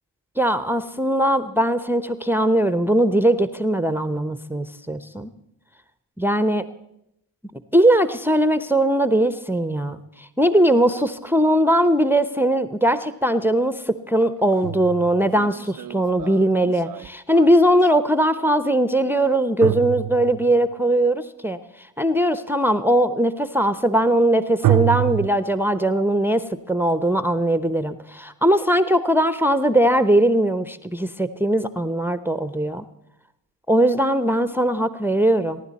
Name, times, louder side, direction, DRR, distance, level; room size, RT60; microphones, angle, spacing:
voice 1, 0.4-5.3 6.2-6.6 7.7-21.6 22.0-32.8 33.7-35.6, right 1 dB, 5° right, 10 dB, 0.8 m, -20 dB
sound 1, 13.2-13.3 14.2-17.9 19.6-20.7 24.6-25.3, right 17 dB, 45° right, 0.5 m, -26 dB
23.5 x 10.5 x 4.2 m, 0.83 s
hypercardioid pair, 45°, 45 cm